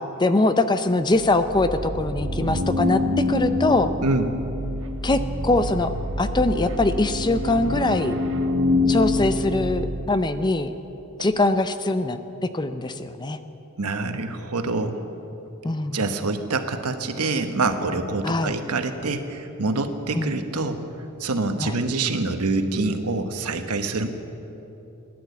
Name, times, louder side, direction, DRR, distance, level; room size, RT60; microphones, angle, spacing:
voice 1, 0.0-3.0 3.3-3.9 5.0-5.9 6.2-8.2 8.9-10.7 11.2-13.4 15.6-16.0 18.2-18.5 20.1-20.4 21.6-21.7, left 2 dB, 20° left, 10 dB, 0.5 m, -22 dB
sound 1, 1.2-10.5, left 2 dB, 60° right, 1.1 m, -26 dB
voice 2, 4.0-4.3 13.8-15.0 15.9-20.8 21.2-24.1, right 3 dB, 90° right, 7 dB, 1.1 m, -25 dB
16.0 x 10.5 x 8.3 m, 3.0 s
head